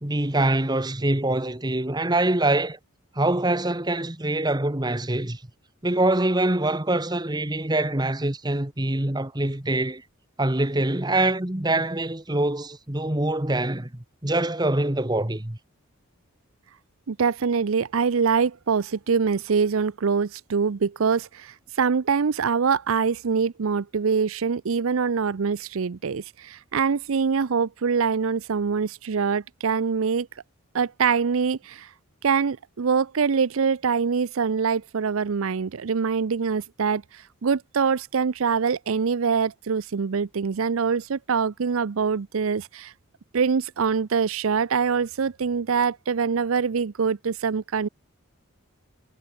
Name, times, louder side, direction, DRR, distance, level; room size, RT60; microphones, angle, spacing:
voice 1, 0.0-2.8 3.1-5.4 5.8-10.0 10.4-15.6, right 2 dB, 20° right, 1.3 m, -24 dB
voice 2, 17.1-30.3 30.7-31.9 32.2-42.9 43.3-47.9, right 5 dB, 75° right, 0.5 m, -24 dB
head